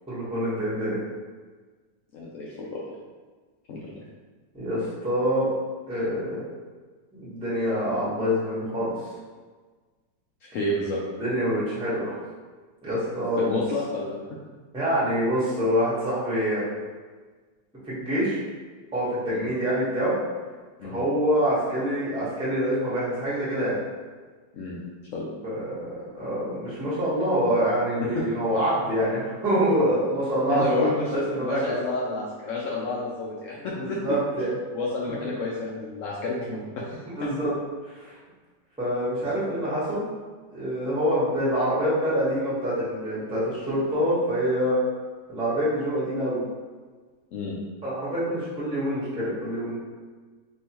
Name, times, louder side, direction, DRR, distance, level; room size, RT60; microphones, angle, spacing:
voice 1, 0.1-1.0 4.5-5.5 5.9-6.4 7.1-8.9 11.2-12.2 12.8-13.6 14.7-16.6 17.8-18.4 18.9-20.1 20.8-23.8 25.4-31.6 33.7-34.5 35.2-35.3 37.2-37.5 37.8-38.2 38.8-40.0 40.5-44.8 45.3-46.4 47.8-49.8, equal, 5° right, -9 dB, 0.9 m, -26 dB
voice 2, 2.1-2.9 3.7-4.0 10.4-11.0 13.4-14.2 19.3-19.5 20.8-21.0 24.5-24.8 25.1-25.3 28.1-28.3 30.5-34.0 34.7-37.3 47.3-47.6, left 2 dB, 80° left, -5 dB, 0.7 m, -30 dB
3.7 x 3.0 x 2.9 m, 1.4 s
omnidirectional pair, 2.0 m